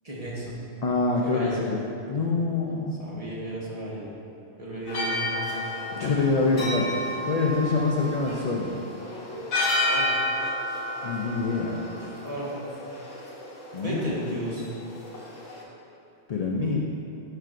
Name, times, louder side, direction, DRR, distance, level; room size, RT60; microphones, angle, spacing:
voice 1, 0.0-0.6 1.2-1.6 3.0-4.0 4.6-5.4 6.3-6.7 9.9-10.1 12.2-12.5 13.8-14.6, right 1 dB, 30° right, -6 dB, 1.3 m, -34 dB
voice 2, 0.8-1.8 2.1-3.0 5.9-6.9 7.2-8.7 11.0-11.7 13.7-14.0 16.3-16.8, left 3 dB, 55° left, -2 dB, 0.4 m, -25 dB
sound 1, 4.9-15.6, left 1 dB, 90° left, 1.5 m, -31 dB
12.0 x 4.6 x 2.5 m, 2.7 s
omnidirectional pair, 1.3 m